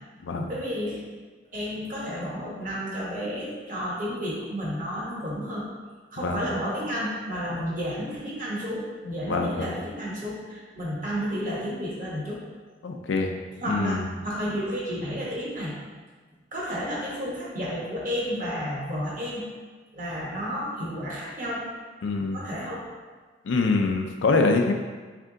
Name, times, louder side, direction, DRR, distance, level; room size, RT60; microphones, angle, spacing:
voice 1, 0.5-1.0 1.5-5.7 6.1-12.4 13.6-15.7 16.5-19.4 19.9-21.6 22.3-22.8, equal, 45° right, -5 dB, 1.1 m, -31 dB
voice 2, 9.3-9.7 12.8-13.3 13.7-14.1 22.0-22.4 23.4-24.7, left 3 dB, 85° left, 4 dB, 0.5 m, -24 dB
3.6 x 3.3 x 3.8 m, 1.4 s
head